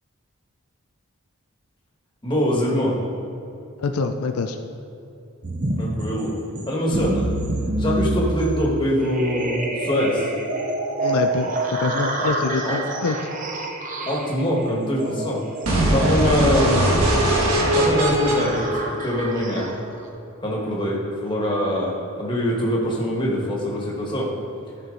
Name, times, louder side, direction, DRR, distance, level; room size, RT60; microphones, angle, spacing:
voice 1, 2.2-3.0 5.8-6.3 6.7-7.3 7.7-10.3 12.2-12.3 12.6-12.8 14.1-15.4 15.9-16.9 17.7-19.7 20.4-24.3, equal, 20° left, -4 dB, 1.5 m, -23 dB
voice 2, 3.8-4.6 11.0-11.5 11.8-13.2, left 4 dB, 85° left, 6 dB, 0.5 m, -25 dB
sound 1, 5.4-20.1, right 1 dB, 35° right, 0.7 m, -28 dB
sound 2, 15.6-19.6, right 1 dB, 85° right, 1.3 m, -21 dB
13.0 x 4.6 x 3.9 m, 2.7 s
head